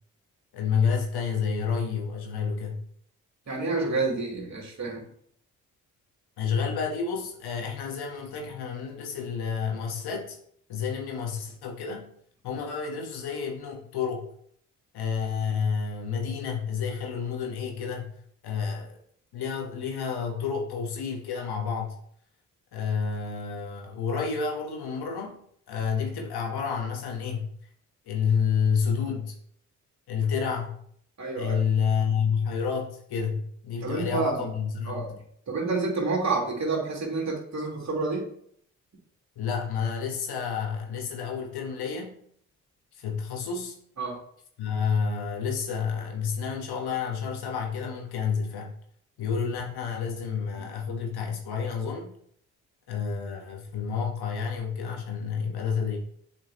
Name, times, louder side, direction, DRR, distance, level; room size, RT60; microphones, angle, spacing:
voice 1, 0.5-2.8 6.4-10.4 10.7-12.1 12.4-14.3 14.9-18.1 18.4-19.0 19.3-21.9 22.7-25.3 25.7-27.5 28.1-29.3 30.1-30.8 31.4-35.1 39.3-42.2 42.9-43.7 44.6-48.8 49.2-52.1 52.9-56.0, left 6 dB, 65° left, 1 dB, 1.6 m, -29 dB
voice 2, 3.5-5.1 31.2-31.6 33.8-34.5 34.9-35.2 35.5-38.3 44.0-44.2, right 3 dB, 40° right, -1 dB, 2.9 m, -29 dB
7.5 x 5.0 x 3.1 m, 0.65 s
hypercardioid pair, 40°, 41 cm